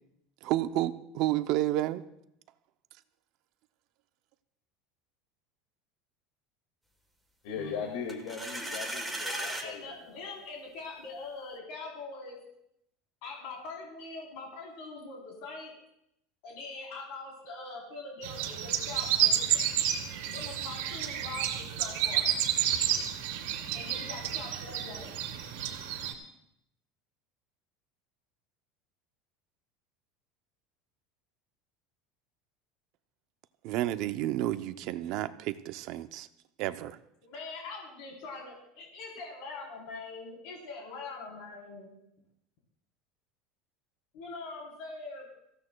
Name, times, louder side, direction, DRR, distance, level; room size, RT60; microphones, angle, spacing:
voice 1, 0.4-2.0 33.6-36.3 36.6-37.0, right 14 dB, 45° right, 0.6 m, -30 dB
voice 2, 7.4-10.2, left 6 dB, 75° left, 2.0 m, -38 dB
sound 1, 8.1-9.7, right 1 dB, ahead, 1.2 m, -36 dB
voice 3, 9.3-12.4 13.2-15.7 16.4-19.7 20.3-22.3 23.7-25.3 37.2-42.0 44.1-45.3, left 3 dB, 55° left, 3.6 m, -43 dB
sound 2, 18.2-26.1, right 10 dB, 85° right, 2.1 m, -30 dB
25.0 x 15.5 x 2.3 m
cardioid pair, 175°, 0 cm